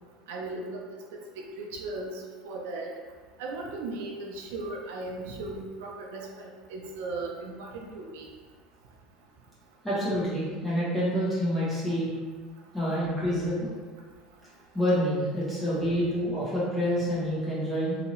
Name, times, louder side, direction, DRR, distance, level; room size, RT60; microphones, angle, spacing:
voice 1, 0.3-0.9 1.1-2.9 3.4-8.3 11.9-12.0, right 2 dB, 85° right, 0 dB, 0.6 m, -37 dB
voice 2, 9.8-12.1 12.7-13.7 14.7-18.0, equal, 5° left, -9 dB, 1.3 m, -27 dB
3.6 x 2.9 x 2.9 m, 1.4 s
cardioid pair, 155°, 0 cm